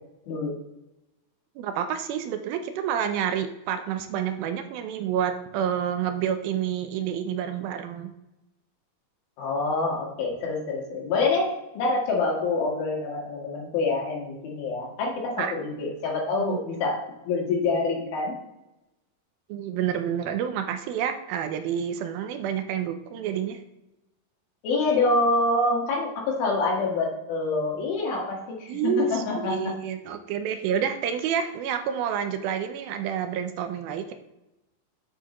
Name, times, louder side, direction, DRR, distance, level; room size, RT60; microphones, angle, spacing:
voice 1, 1.6-8.1 15.4-15.5 16.4-16.6 19.5-23.6 28.7-34.1, right 8 dB, 85° right, 8 dB, 2.5 m, -29 dB
voice 2, 9.4-18.3 24.6-29.7, left 3 dB, 80° left, -2 dB, 3.4 m, -26 dB
8.4 x 7.0 x 3.0 m, 0.93 s
omnidirectional pair, 4.2 m